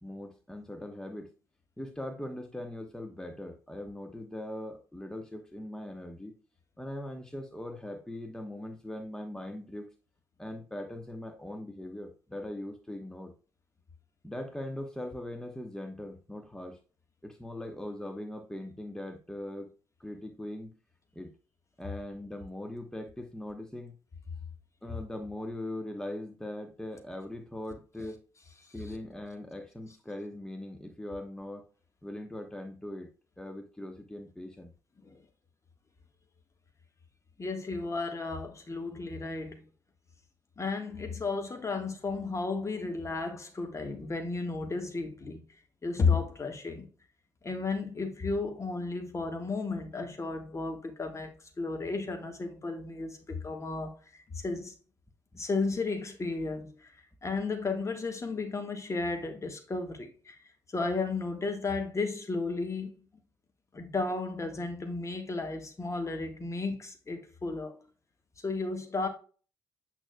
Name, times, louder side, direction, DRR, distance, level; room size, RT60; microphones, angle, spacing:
voice 1, 0.0-1.3 1.8-6.3 6.8-9.9 10.4-13.3 14.2-16.8 17.2-19.7 20.0-20.7 21.1-21.3 21.8-23.9 24.8-28.2 28.7-31.6 32.0-33.1 33.4-34.7 55.3-55.4, left 1 dB, 5° left, 1.2 m, -40 dB
voice 2, 37.4-39.6 40.6-45.4 45.8-46.9 47.4-54.7 55.4-56.9 57.2-60.4 60.7-62.9 63.7-67.8 68.4-69.1, left 3 dB, 30° left, 1.6 m, -33 dB
8.8 x 6.1 x 2.3 m
figure-of-eight pair, 40°, 9 cm